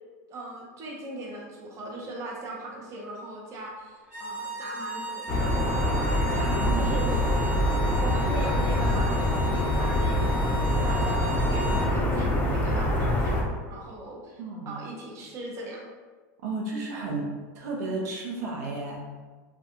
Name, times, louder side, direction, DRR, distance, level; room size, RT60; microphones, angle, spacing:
voice 1, 0.3-5.3 6.7-7.2 8.0-13.4 13.7-14.4 14.7-15.9, right 1 dB, 35° right, -2 dB, 0.6 m, -39 dB
sound 1, 4.0-11.9, right 1 dB, 15° right, 1.0 m, -36 dB
sound 2, 5.3-13.4, left 1 dB, 15° left, 0.5 m, -25 dB
voice 2, 6.3-7.0 14.4-14.8 16.4-19.2, right 3 dB, 85° right, -1 dB, 0.6 m, -33 dB
2.3 x 2.2 x 2.8 m, 1.4 s
supercardioid pair, 120°, 9 cm